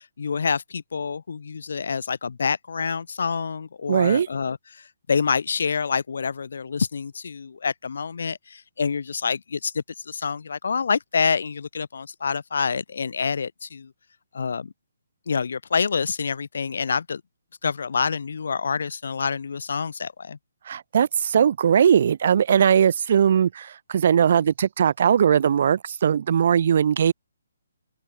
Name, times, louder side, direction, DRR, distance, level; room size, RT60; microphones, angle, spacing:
voice 1, 0.0-13.9 14.3-14.7 15.3-17.2 17.6-20.4, left 5 dB, 55° left, 0.5 m, -27 dB
voice 2, 3.9-4.3 20.7-27.1, right 8 dB, 35° right, 1.3 m, -19 dB
open air
hypercardioid pair, 180°, 0 cm